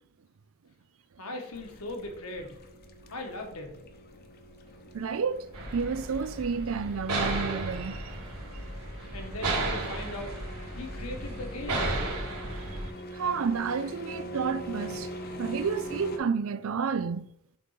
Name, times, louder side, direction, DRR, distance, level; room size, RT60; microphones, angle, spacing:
voice 1, 1.2-2.6 3.1-3.8 9.1-10.3 10.7-12.1, left 1 dB, 80° left, 1.4 m, -39 dB
sound 1, 1.5-16.2, equal, 45° left, 0.8 m, -43 dB
voice 2, 4.9-8.2 13.1-15.1 15.4-17.3, right 5 dB, 65° right, 0.4 m, -30 dB
sound 2, 5.5-12.9, right 2 dB, 85° right, 1.8 m, -34 dB
6.0 x 3.8 x 5.6 m
head